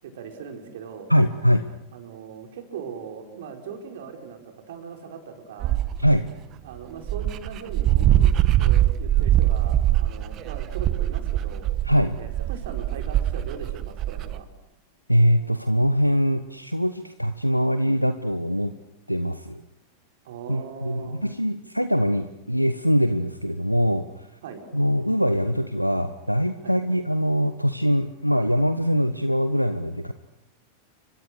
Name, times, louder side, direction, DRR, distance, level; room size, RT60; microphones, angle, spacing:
voice 1, 0.0-1.1 1.9-5.8 6.6-11.7 12.2-14.5 20.2-21.2 24.4-24.6 26.6-26.8, right 6 dB, 55° right, 5 dB, 4.9 m, -39 dB
voice 2, 1.1-1.6 6.0-6.3 11.8-12.2 15.1-18.7 19.1-19.6 20.5-24.1 24.7-30.1, equal, 90° right, 10 dB, 1.1 m, -22 dB
Dog, 5.6-6.2 6.8-6.9 7.0-14.4, right 13 dB, 35° right, 1.4 m, -22 dB
29.5 x 24.5 x 6.6 m, 0.86 s
figure-of-eight pair, 90°, 0 cm